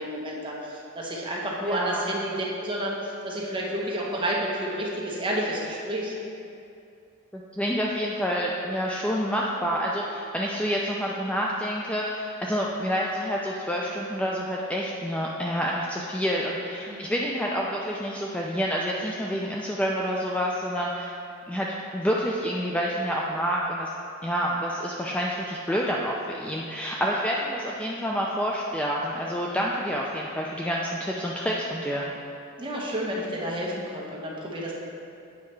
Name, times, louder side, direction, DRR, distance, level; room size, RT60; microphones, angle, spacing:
voice 1, 0.0-2.3 2.6-6.1 16.9-17.1 32.6-34.7, right 1 dB, 25° right, -4 dB, 1.0 m, -30 dB
voice 2, 1.7-2.1 7.3-21.1 21.5-23.9 24.2-32.0, equal, 5° left, -3 dB, 0.3 m, -28 dB
8.3 x 5.6 x 3.2 m, 2.6 s
head